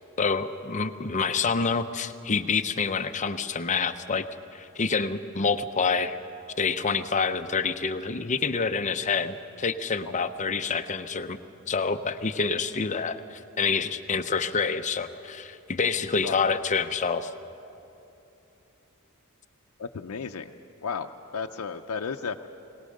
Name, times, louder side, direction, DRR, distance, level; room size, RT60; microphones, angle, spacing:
voice 1, 0.2-4.2 4.5-6.2 6.6-11.4 11.7-17.3, left 5 dB, 35° left, 9 dB, 0.7 m, -27 dB
voice 2, 16.0-16.4 19.8-20.5 20.8-22.5, left 5 dB, 90° left, 4 dB, 0.6 m, -34 dB
21.5 x 18.5 x 6.5 m, 2.9 s
head